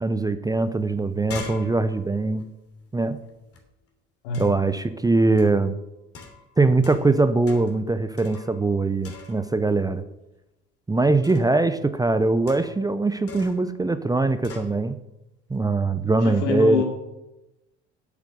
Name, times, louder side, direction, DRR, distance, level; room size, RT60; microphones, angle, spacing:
voice 1, 0.0-2.5 2.9-3.2 4.4-5.8 6.6-10.0 10.9-14.9 15.5-16.8, right 3 dB, 10° right, 11 dB, 0.6 m, -22 dB
sound 1, 0.5-0.6 0.9-3.6 4.3-4.7 5.4-5.7 6.1-7.2 7.5-7.8 8.2-8.8 9.0-9.6 11.2-11.6 12.5-12.9 13.3-13.7 14.4-14.7, left 4 dB, 40° left, 3.1 m, -42 dB
voice 2, 16.2-16.8, left 5 dB, 75° left, 1 dB, 3.0 m, -25 dB
8.5 x 8.4 x 6.6 m, 0.92 s
hypercardioid pair, 75°, 35 cm